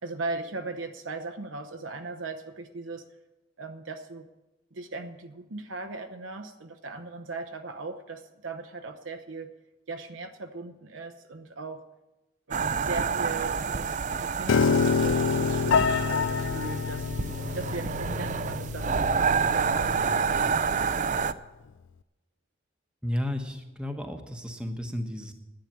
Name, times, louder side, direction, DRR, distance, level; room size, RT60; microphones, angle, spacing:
voice 1, 0.0-3.1 3.6-4.3 4.7-9.5 9.9-11.8 12.5-17.1 17.5-20.6, right 3 dB, 85° right, 7 dB, 0.8 m, -38 dB
sound 1, 12.5-21.3, right 5 dB, 40° right, 0.4 m, -28 dB
Piano, 14.5-20.7, left 5 dB, 80° left, 0.4 m, -27 dB
voice 2, 23.0-25.3, left 1 dB, 5° right, 4 dB, 1.0 m, -33 dB
10.5 x 9.0 x 8.7 m, 1.0 s
head